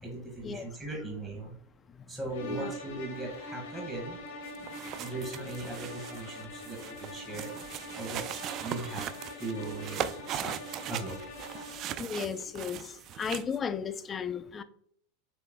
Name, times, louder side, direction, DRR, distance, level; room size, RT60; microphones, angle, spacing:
voice 1, 0.0-1.5 2.1-4.2 4.6-4.7 5.0-7.5 8.0-8.3 8.6-9.1 9.4-10.6 10.9-11.2, right 2 dB, 15° right, 1.7 m, -38 dB
sound 1, 2.3-12.0, equal, 80° left, 1.7 m, -43 dB
voice 2, 2.4-2.7 12.0-14.6, left 6 dB, 25° left, 0.4 m, -35 dB
sound 2, 4.5-13.6, right 10 dB, 45° right, 0.3 m, -39 dB
6.9 x 3.2 x 2.2 m
hypercardioid pair, 105°, 0 cm